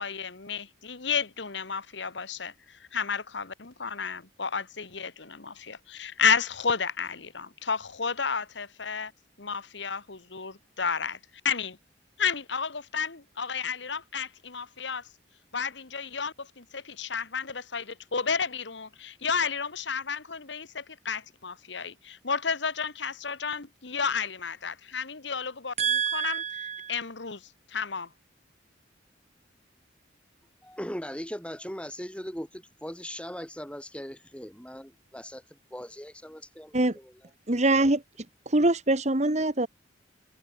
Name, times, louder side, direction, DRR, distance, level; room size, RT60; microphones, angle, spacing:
voice 1, 0.0-9.1 9.4-11.2 11.4-11.8 12.2-15.1 15.5-26.4 26.9-28.1, left 6 dB, 70° left, 1.6 m, -32 dB
voice 2, 25.8-27.0 36.7-37.0 37.5-39.7, right 2 dB, 40° right, 1.8 m, -25 dB
voice 3, 30.6-35.4 35.7-36.1 36.5-36.8 37.7-37.9, equal, 5° left, 6.2 m, -39 dB
head